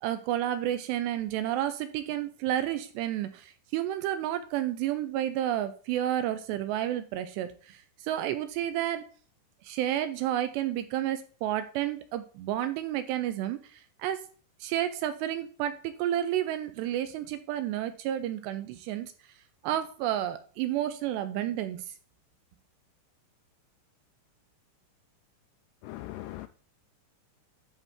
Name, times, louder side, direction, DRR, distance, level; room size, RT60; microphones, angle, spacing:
voice 1, 0.0-9.1 9.6-14.2 14.6-19.1 19.6-21.9, right 12 dB, 80° right, 2.6 m, -31 dB
voice 2, 25.8-26.5, left 16 dB, 85° left, 2.5 m, -40 dB
11.0 x 4.3 x 3.5 m
omnidirectional pair, 5.3 m